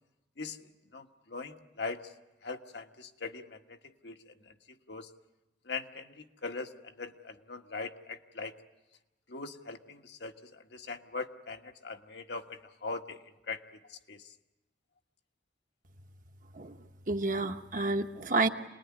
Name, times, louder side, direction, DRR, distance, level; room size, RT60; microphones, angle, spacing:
voice 1, 0.9-2.0 2.4-3.8 4.0-4.2 4.9-5.1 5.7-8.5 9.3-13.6 14.1-14.2, left 4 dB, 75° left, 5 dB, 1.4 m, -41 dB
voice 2, 17.1-18.5, right 3 dB, 45° right, 6 dB, 1.1 m, -29 dB
27.5 x 20.0 x 9.6 m, 1.0 s
head